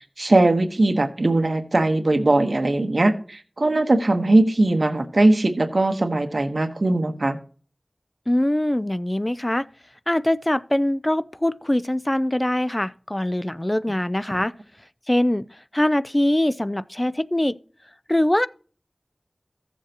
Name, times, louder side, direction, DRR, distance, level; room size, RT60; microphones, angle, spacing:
voice 1, 0.2-7.4, right 2 dB, 80° right, 1.2 m, -20 dB
voice 2, 8.3-9.7 10.1-14.5 15.1-15.5 15.7-17.5 18.1-18.5, left 1 dB, 25° left, 0.4 m, -22 dB
15.0 x 7.3 x 2.9 m
wide cardioid pair, 45°, 0 cm